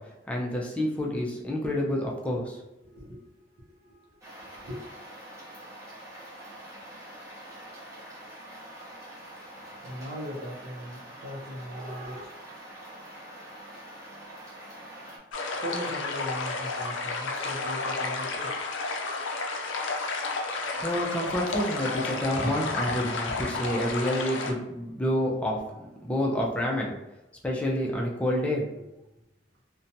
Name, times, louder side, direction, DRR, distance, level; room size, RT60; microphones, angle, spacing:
voice 1, 0.0-2.6 20.8-25.6 26.0-26.9 27.4-28.9, left 1 dB, 5° left, -3 dB, 0.4 m, -28 dB
voice 2, 2.8-3.2 3.5-4.8 9.8-12.4 15.5-18.7, equal, 60° right, -3 dB, 0.6 m, -39 dB
sound 1, 4.2-15.2, right 1 dB, 15° right, 0.7 m, -45 dB
sound 2, 15.3-24.5, left 3 dB, 90° left, 0.4 m, -31 dB
2.8 x 2.1 x 2.6 m, 0.93 s
head